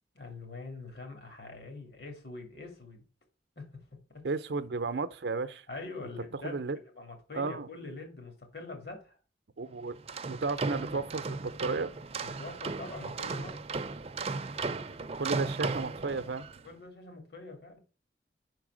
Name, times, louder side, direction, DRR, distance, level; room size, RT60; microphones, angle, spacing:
voice 1, 0.1-3.1 3.6-3.8 4.1-4.2 5.7-9.2 12.2-13.6 16.6-17.8, left 3 dB, 65° left, 2.3 m, -44 dB
voice 2, 4.2-5.6 6.4-6.8 7.3-7.7 9.6-9.9 10.3-11.9 15.2-16.5, right 4 dB, 80° right, 0.6 m, -33 dB
sound 1, 9.9-16.6, right 4 dB, 35° right, 0.5 m, -36 dB
5.7 x 4.6 x 6.1 m
head